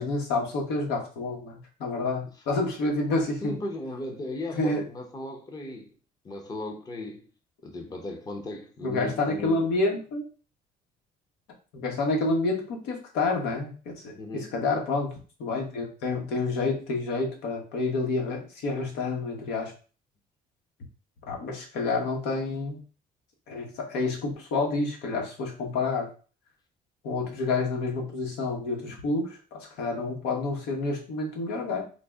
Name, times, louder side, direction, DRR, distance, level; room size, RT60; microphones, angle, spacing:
voice 1, 0.0-3.5 4.5-4.8 8.8-10.3 11.7-19.7 21.3-22.8 23.5-26.1 27.0-31.8, left 3 dB, 85° left, 1.1 m, -29 dB
voice 2, 3.4-5.9 6.2-7.2 7.6-9.6 14.1-14.5, left 2 dB, 20° left, 0.7 m, -36 dB
3.8 x 2.0 x 3.5 m
cardioid pair, 110°, 17 cm